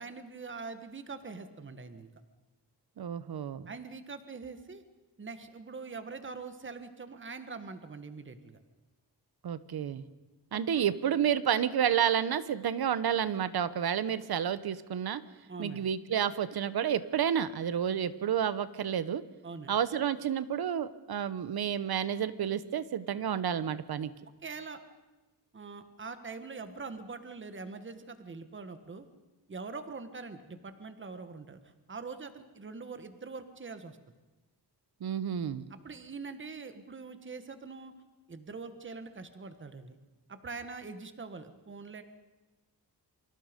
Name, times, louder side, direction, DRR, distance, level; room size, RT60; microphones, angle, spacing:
voice 1, 0.0-2.1 3.7-4.8 5.2-8.6 10.5-10.6 15.5-15.8 19.4-19.7 24.4-24.8 25.5-29.1 29.5-31.6 31.9-34.0 35.7-37.9 38.3-40.0 40.3-42.0, right 4 dB, 30° right, 9 dB, 1.5 m, -43 dB
voice 2, 3.0-3.7 9.4-10.0 10.5-15.2 15.6-19.2 19.7-24.1 35.0-35.6, right 9 dB, 65° right, 14 dB, 1.1 m, -30 dB
28.0 x 25.0 x 5.3 m, 1.1 s
wide cardioid pair, 155°, 40 cm